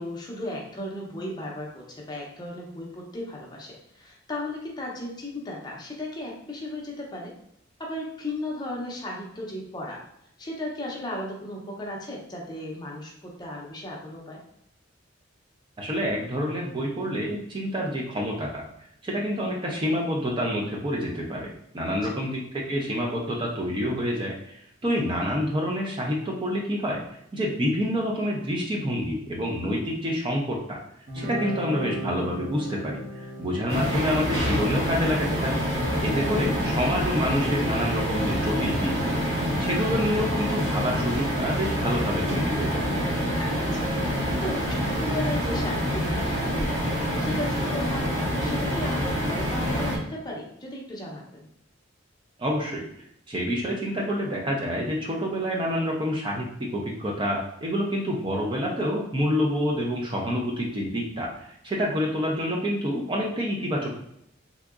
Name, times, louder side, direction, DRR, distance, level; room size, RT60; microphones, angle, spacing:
voice 1, 0.0-7.3 7.8-10.0 10.4-14.4 22.0-22.1 43.4-43.9 44.4-46.8 47.2-51.5, left 1 dB, 20° left, -2 dB, 0.6 m, -35 dB
voice 2, 15.8-18.6 19.0-27.0 27.3-30.8 31.1-35.6 36.0-39.2 39.6-42.8 52.4-52.9 53.3-56.5 56.7-64.0, equal, 25° right, -1 dB, 0.5 m, -28 dB
Guitar, 31.1-38.2, right 1 dB, 50° right, 0.8 m, -38 dB
sound 1, 33.7-50.0, equal, 75° right, 1.1 m, -26 dB
3.5 x 2.8 x 2.4 m, 0.76 s
head